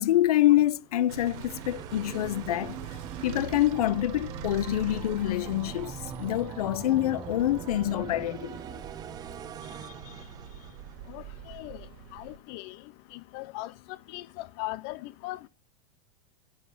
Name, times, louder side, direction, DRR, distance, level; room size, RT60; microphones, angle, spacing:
voice 1, 0.0-8.6 9.8-10.3, left 14 dB, 90° left, 0.9 m, -26 dB
sound 1, 0.9-11.2, right 9 dB, 20° right, 0.8 m, -42 dB
sound 2, 1.1-12.4, right 8 dB, 50° right, 1.8 m, -44 dB
voice 2, 11.1-11.8 12.1-12.8 13.1-13.7 14.1-15.5, left 19 dB, 45° left, 0.6 m, -39 dB
11.0 x 7.8 x 5.6 m
supercardioid pair, 150°, 19 cm